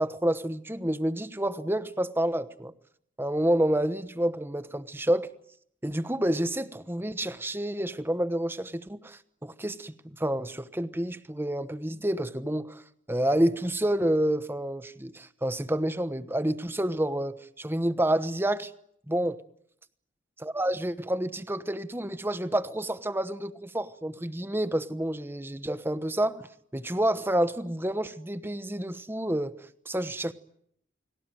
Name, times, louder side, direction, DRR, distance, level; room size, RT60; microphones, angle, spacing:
voice 1, 0.0-2.7 3.2-5.3 5.8-12.8 13.1-18.7 19.1-19.4 20.4-26.5 26.7-30.3, right 1 dB, 10° right, 1.1 m, -29 dB
30.0 x 20.5 x 9.1 m
head